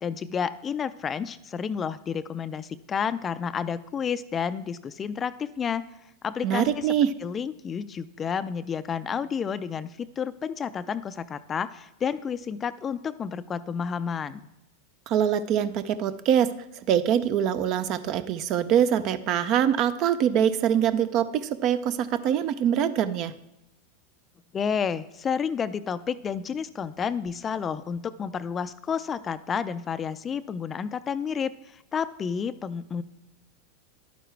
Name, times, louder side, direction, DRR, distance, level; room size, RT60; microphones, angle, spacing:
voice 1, 0.0-5.9 6.2-6.9 7.2-14.5 24.5-33.0, left 7 dB, 25° left, 14 dB, 0.4 m, -30 dB
voice 2, 6.4-7.1 15.1-16.5 16.8-23.3, right 9 dB, 50° right, 13 dB, 0.6 m, -24 dB
11.0 x 9.1 x 3.4 m, 0.90 s
hypercardioid pair, 105°, 0 cm